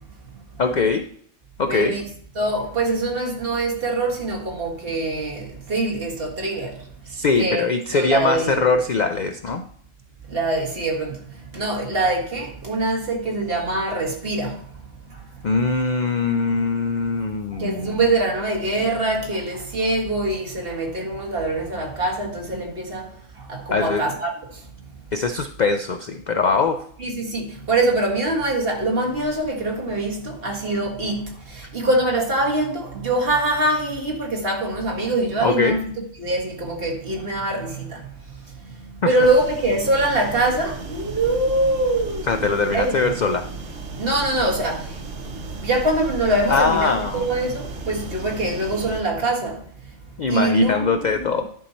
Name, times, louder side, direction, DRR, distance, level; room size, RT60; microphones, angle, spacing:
voice 1, 0.6-1.0 1.6-2.0 7.1-9.6 15.4-18.0 23.7-24.1 25.1-26.8 35.4-35.8 39.0-39.1 42.3-43.4 46.5-47.3 50.2-51.4, left 4 dB, 60° left, 0.4 m, -22 dB
voice 2, 1.6-2.0 2.4-6.8 7.4-7.6 7.9-8.6 10.3-14.6 15.1-15.2 17.5-24.7 27.0-35.9 36.2-42.5 42.7-43.1 44.0-45.0 45.5-49.6 50.3-51.3, right 2 dB, 45° right, 2.0 m, -24 dB
sound 1, 39.2-49.0, right 3 dB, 70° right, 1.6 m, -35 dB
11.0 x 5.6 x 4.2 m
omnidirectional pair, 1.4 m